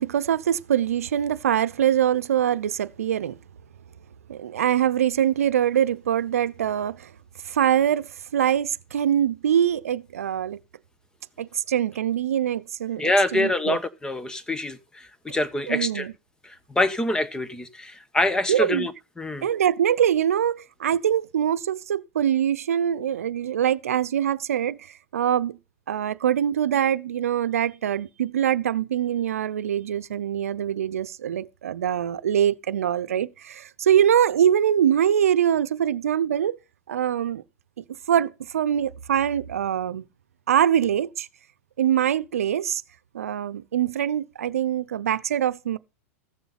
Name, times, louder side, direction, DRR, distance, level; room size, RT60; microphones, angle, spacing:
voice 1, 0.0-3.4 4.3-7.1 7.5-10.6 11.4-13.8 15.7-16.1 18.5-18.9 19.4-24.8 25.1-25.6 25.9-36.6 36.9-37.4 37.8-40.0 40.5-41.3 41.8-42.8 43.1-45.8, right 9 dB, 85° right, 0.7 m, -23 dB
voice 2, 13.0-16.1 16.4-18.9 19.2-19.5, left 1 dB, 10° left, 1.2 m, -25 dB
15.0 x 7.0 x 5.7 m
hypercardioid pair, 110°, 8 cm